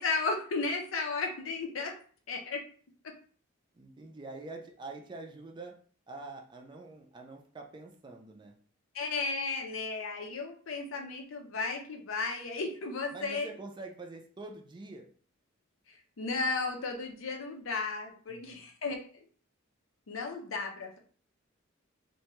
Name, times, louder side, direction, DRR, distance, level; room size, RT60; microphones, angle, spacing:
voice 1, 0.0-1.9 2.3-2.6 8.9-13.5 15.9-19.0 20.1-21.0, left 4 dB, 75° left, 3 dB, 0.6 m, -34 dB
voice 2, 3.7-5.8 6.1-8.5 13.1-15.1 18.3-18.7, right 3 dB, 25° right, 2 dB, 0.4 m, -45 dB
2.6 x 2.2 x 2.9 m, 0.44 s
head